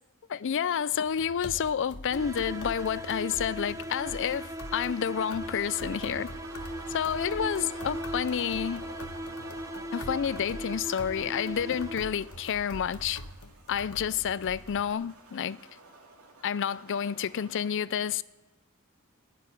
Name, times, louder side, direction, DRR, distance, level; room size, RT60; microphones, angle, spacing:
voice 1, 0.3-6.3 6.9-8.8 9.9-13.2 13.7-15.6 16.4-18.2, left 8 dB, 60° left, 0.4 m, -29 dB
sound 1, 0.9-14.9, left 1 dB, 80° left, 1.2 m, -45 dB
sound 2, 2.1-12.3, right 1 dB, 15° right, 0.7 m, -39 dB
sound 3, 2.2-17.7, right 3 dB, 80° right, 2.3 m, -50 dB
14.5 x 7.4 x 10.0 m
head